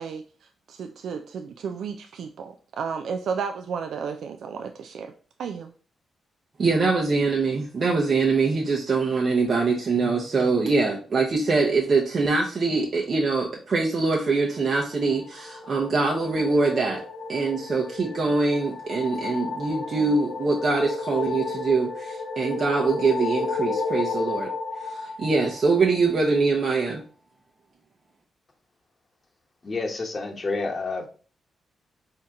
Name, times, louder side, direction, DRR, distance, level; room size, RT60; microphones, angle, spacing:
voice 1, 0.0-5.1 5.4-5.7, right 6 dB, 75° right, 6 dB, 0.3 m, -33 dB
voice 2, 6.6-17.0 17.3-24.5 24.8-27.0, right 4 dB, 55° right, -1 dB, 0.8 m, -23 dB
sound 1, 14.9-26.3, left 4 dB, 80° left, 0.9 m, -33 dB
voice 3, 29.6-31.1, left 3 dB, 40° left, 2 dB, 1.1 m, -29 dB
4.3 x 2.8 x 3.6 m, 0.40 s
supercardioid pair, 55°, 0 cm